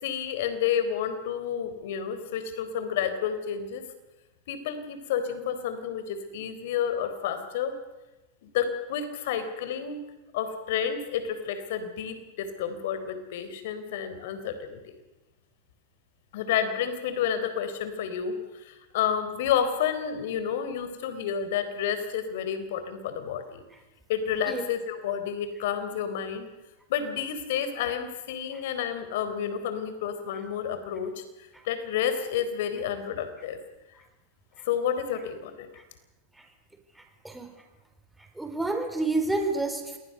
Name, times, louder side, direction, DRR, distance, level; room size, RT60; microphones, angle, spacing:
voice 1, 0.0-3.8 4.5-7.8 8.4-10.0 10.3-14.8 16.3-18.4 18.6-23.6 24.1-26.5 26.9-31.2 31.6-33.6 34.6-35.7, left 8 dB, 65° left, 10 dB, 4.0 m, -30 dB
voice 2, 37.0-37.5 38.2-40.0, right 2 dB, 5° right, 4 dB, 4.2 m, -30 dB
27.5 x 20.0 x 6.7 m, 1.1 s
hypercardioid pair, 115°, 0 cm